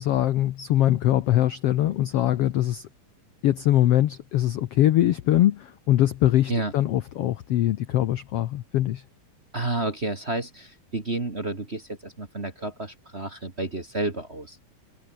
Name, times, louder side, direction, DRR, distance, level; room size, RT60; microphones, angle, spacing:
voice 1, 0.0-2.9 3.4-9.0, left 13 dB, 85° left, 1.3 m, -22 dB
voice 2, 9.5-14.6, right 2 dB, 25° right, 1.7 m, -30 dB
omnidirectional pair, 4.0 m